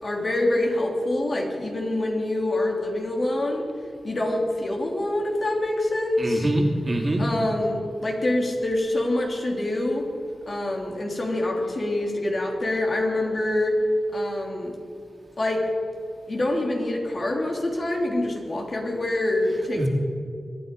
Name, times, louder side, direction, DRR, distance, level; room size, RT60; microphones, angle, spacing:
voice 1, 0.0-3.6 4.0-6.5 7.2-10.1 10.5-13.8 14.1-14.7 15.4-15.7 16.3-19.9, left 1 dB, 50° left, 0 dB, 3.0 m, -25 dB
voice 2, 6.2-7.2 19.8-19.9, right 1 dB, 35° right, 1 dB, 2.7 m, -24 dB
23.5 x 9.7 x 5.3 m, 2.3 s
cardioid pair, 65°, 0 cm